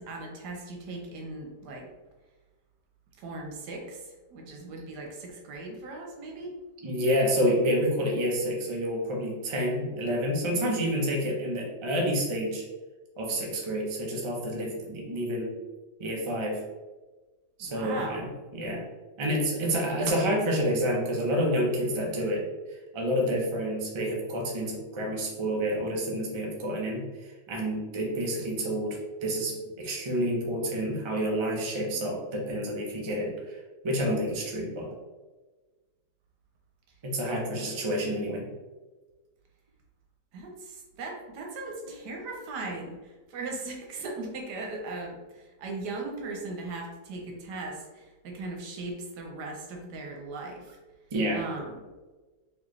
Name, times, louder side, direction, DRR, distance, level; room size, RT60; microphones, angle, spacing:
voice 1, 0.0-1.9 3.2-6.5 17.6-18.3 37.6-37.7 40.3-50.8 51.3-51.8, right 2 dB, 80° right, 1 dB, 1.4 m, -38 dB
voice 2, 6.8-12.6 13.2-15.5 16.0-16.6 17.6-18.3 18.5-18.8 19.2-22.4 22.9-33.6 33.8-34.9 37.0-38.5 51.1-51.4, equal, 35° right, -2 dB, 0.5 m, -29 dB
4.3 x 3.1 x 3.1 m, 1.2 s
omnidirectional pair, 1.7 m